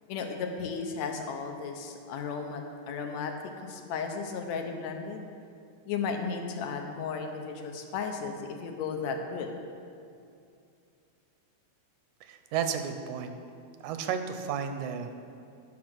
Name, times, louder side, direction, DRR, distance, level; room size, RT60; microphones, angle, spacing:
voice 1, 0.1-3.3 3.6-5.3 5.9-9.5, left 5 dB, 75° left, 4 dB, 1.9 m, -34 dB
voice 2, 12.2-13.3 13.8-15.2, right 7 dB, 90° right, 7 dB, 2.1 m, -33 dB
10.5 x 5.8 x 6.0 m, 2.5 s
omnidirectional pair, 3.4 m